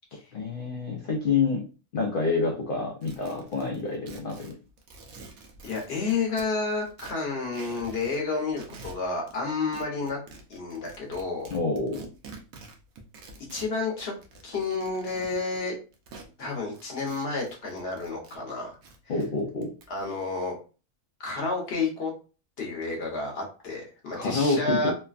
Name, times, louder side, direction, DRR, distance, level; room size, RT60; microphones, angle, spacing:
voice 1, 0.3-1.7 1.9-4.5 11.5-12.0 19.1-19.7 24.1-24.9, left 4 dB, 75° left, 0 dB, 0.4 m, -27 dB
sound 1, 3.0-6.5 6.9-8.2 8.5-9.4 9.7-16.3 16.7-18.4 18.7-20.1, right 3 dB, 75° right, 1.1 m, -47 dB
voice 2, 5.6-10.2 10.5-11.5 13.5-14.1 14.4-15.8 16.4-18.8 19.9-20.5 21.2-22.1 22.6-24.9, left 3 dB, 50° left, 0 dB, 1.0 m, -30 dB
3.1 x 2.2 x 2.3 m, 0.34 s
omnidirectional pair, 1.5 m